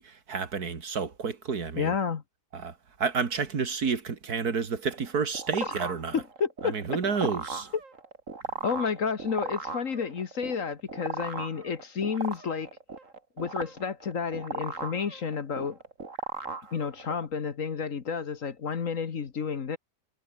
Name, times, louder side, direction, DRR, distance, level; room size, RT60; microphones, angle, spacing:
voice 1, 0.0-1.9 2.5-6.2 6.6-7.7, right 5 dB, 65° right, 2.5 m, -30 dB
voice 2, 1.8-2.2 6.1-6.7 8.6-12.7 13.4-15.8 16.7-19.8, left 6 dB, 50° left, 1.7 m, -31 dB
sound 1, 4.9-17.3, right 3 dB, 50° right, 3.2 m, -37 dB
omnidirectional pair, 1.8 m